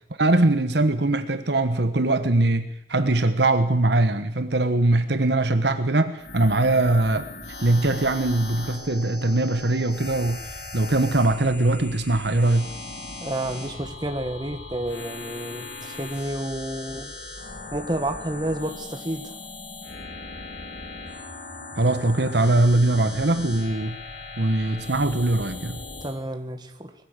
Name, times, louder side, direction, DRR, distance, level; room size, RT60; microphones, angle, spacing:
voice 1, 0.2-7.3 7.6-10.4 10.7-12.7 21.8-24.0 24.4-25.8, right 2 dB, 65° right, 9 dB, 1.3 m, -21 dB
sound 1, 6.2-26.2, left 2 dB, 70° left, 4.3 m, -39 dB
voice 2, 13.2-17.2 17.7-19.3 25.9-26.9, right 1 dB, 25° right, 6 dB, 1.8 m, -30 dB
21.0 x 15.0 x 8.3 m, 0.79 s
head